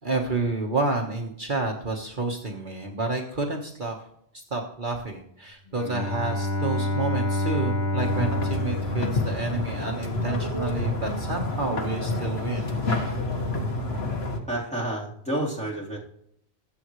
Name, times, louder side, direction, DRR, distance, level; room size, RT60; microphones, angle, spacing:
voice 1, 0.0-4.0 4.5-12.7, right 3 dB, 50° right, 1 dB, 1.6 m, -29 dB
Bowed string instrument, 5.7-10.1, left 1 dB, 45° left, 1.4 m, -28 dB
sound 1, 8.0-14.4, left 2 dB, 75° left, 1.9 m, -29 dB
voice 2, 14.5-16.0, right 1 dB, 5° left, -5 dB, 3.7 m, -29 dB
23.0 x 7.9 x 3.2 m, 0.73 s
omnidirectional pair, 1.1 m